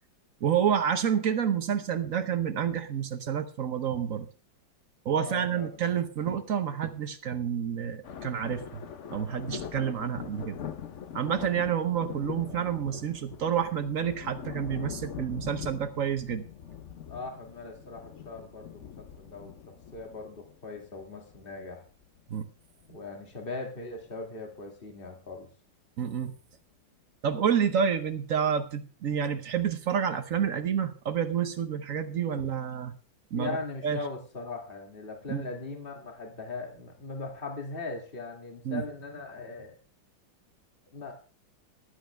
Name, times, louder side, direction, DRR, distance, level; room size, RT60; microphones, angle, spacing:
voice 1, 0.4-4.3 5.0-8.6 9.1-10.6 11.1-16.5 22.3-22.5 26.0-26.3 27.2-32.9 33.3-33.6 33.8-34.0 35.3-35.4 38.6-38.8, right 8 dB, 55° right, 10 dB, 1.1 m, -29 dB
voice 2, 5.2-5.7 12.4-12.6 17.1-21.8 22.9-25.5 33.3-39.7 40.9-41.1, left 3 dB, 30° left, 2 dB, 2.4 m, -39 dB
sound 1, 8.0-22.2 22.7-23.0 23.9-24.1 24.9-25.0 26.5-26.6, left 7 dB, 50° left, 0.9 m, -42 dB
15.0 x 11.5 x 3.4 m, 0.36 s
omnidirectional pair, 2.1 m